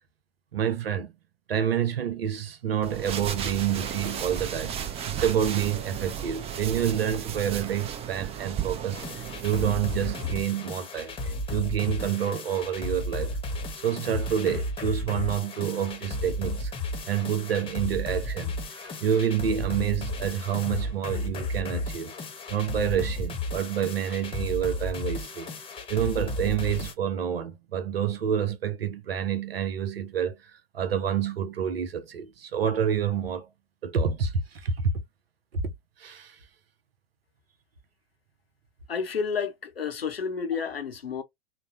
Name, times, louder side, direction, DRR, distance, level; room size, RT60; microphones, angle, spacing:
voice 1, 0.5-1.1 1.5-4.8 5.0-9.0 9.4-13.4 13.8-16.7 17.1-22.1 22.5-25.5 25.9-30.4 30.7-33.5 33.8-34.9 36.0-36.4, right 8 dB, 80° right, 0.6 m, -28 dB
sound 1, 2.8-10.3, right 9 dB, 20° right, 0.4 m, -34 dB
sound 2, 8.9-26.9, left 1 dB, 20° left, 0.8 m, -33 dB
voice 2, 38.9-41.2, left 6 dB, 85° left, 0.7 m, -30 dB
3.0 x 2.0 x 2.5 m
figure-of-eight pair, 85°, 29 cm